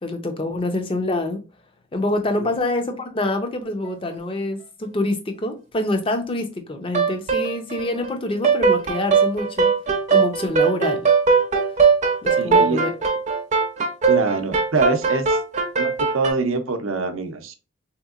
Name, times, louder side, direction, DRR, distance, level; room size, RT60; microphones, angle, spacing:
voice 1, 0.0-1.4 1.9-9.7 10.1-11.1 12.2-12.9, left 2 dB, 25° left, 0.5 m, -26 dB
sound 1, 6.9-8.1 8.4-16.3, right 5 dB, 35° right, 0.6 m, -19 dB
voice 2, 12.4-12.8 14.1-15.4 15.8-17.5, right 4 dB, 80° right, 0.5 m, -24 dB
3.5 x 2.9 x 2.4 m
head